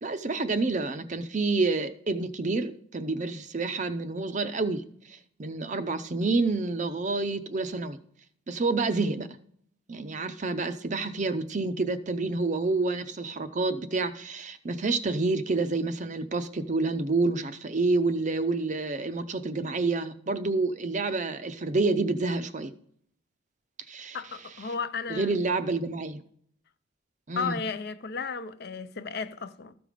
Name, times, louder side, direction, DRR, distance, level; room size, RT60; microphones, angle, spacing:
voice 1, 0.0-8.0 8.5-9.3 9.9-22.7 23.9-24.2 25.1-26.2 27.3-27.6, right 3 dB, 35° right, 0.5 m, -28 dB
voice 2, 24.1-25.4 27.4-29.7, left 5 dB, 50° left, 0.5 m, -34 dB
13.5 x 5.2 x 5.0 m
head